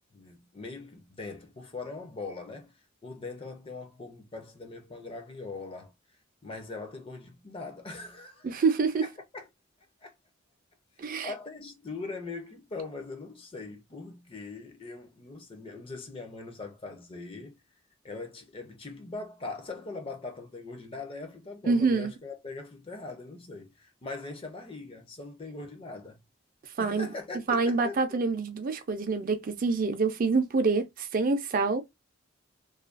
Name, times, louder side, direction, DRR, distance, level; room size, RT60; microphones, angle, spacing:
voice 1, 0.0-2.7 3.0-5.9 6.4-8.6 9.0-9.1 9.3-9.5 10.0-10.1 11.0-17.6 18.0-26.2 26.8-28.2, left 3 dB, 30° left, 0.5 m, -41 dB
voice 2, 8.4-9.0 11.0-11.3 21.6-22.1 26.8-27.1 27.5-31.8, right 4 dB, 45° right, 0.4 m, -26 dB
2.4 x 2.2 x 2.4 m
head